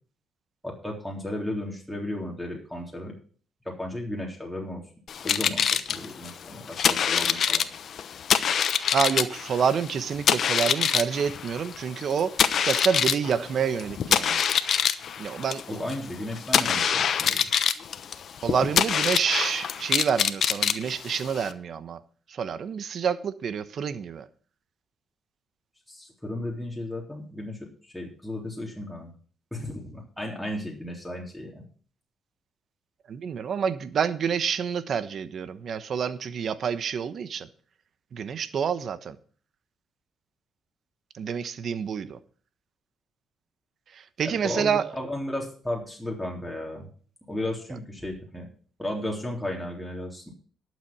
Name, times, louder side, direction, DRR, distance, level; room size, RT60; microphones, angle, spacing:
voice 1, 0.6-3.1 3.7-4.8 5.2-7.7 15.7-17.5 25.9-29.1 29.5-31.6 44.2-46.9 47.3-48.5 48.8-50.3, left 1 dB, ahead, 3.5 m, -34 dB
sound 1, 5.1-21.5, left 8 dB, 60° left, 0.9 m, -25 dB
voice 2, 8.9-14.4 15.2-15.6 18.4-22.0 22.3-24.2 33.1-37.5 38.1-39.2 41.1-42.2 43.9-44.8, right 7 dB, 55° right, 1.1 m, -28 dB
12.0 x 7.5 x 6.1 m
cardioid pair, 90°, 0 cm